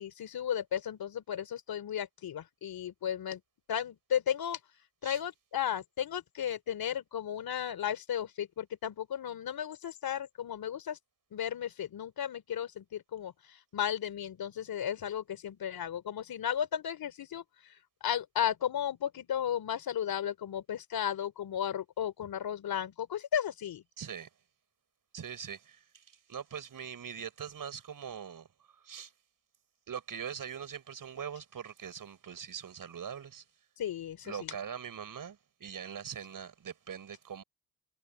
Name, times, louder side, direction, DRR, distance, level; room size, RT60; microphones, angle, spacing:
voice 1, 0.0-3.4 3.7-4.6 5.0-11.0 11.3-13.3 13.7-17.4 18.0-23.8 33.8-34.5, left 9 dB, 65° left, 3.2 m, -34 dB
voice 2, 24.0-24.3 25.1-28.5 28.8-29.1 29.9-33.4 34.2-37.4, right 8 dB, 55° right, 6.6 m, -42 dB
hypercardioid pair, 45°, 39 cm